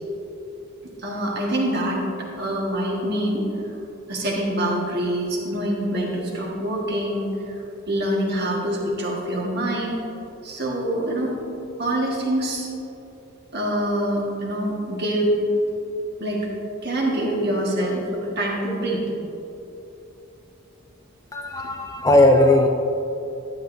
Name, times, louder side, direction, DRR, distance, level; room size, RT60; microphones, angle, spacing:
voice 1, 1.0-3.5 4.1-7.6 7.9-10.0 10.4-11.3 11.8-12.7 13.5-15.7 16.2-16.5 16.8-19.0, right 1 dB, 50° right, -3 dB, 1.6 m, -25 dB
voice 2, 21.3-22.7, left 1 dB, 15° left, 3 dB, 0.4 m, -17 dB
11.5 x 9.9 x 2.7 m, 2.9 s
head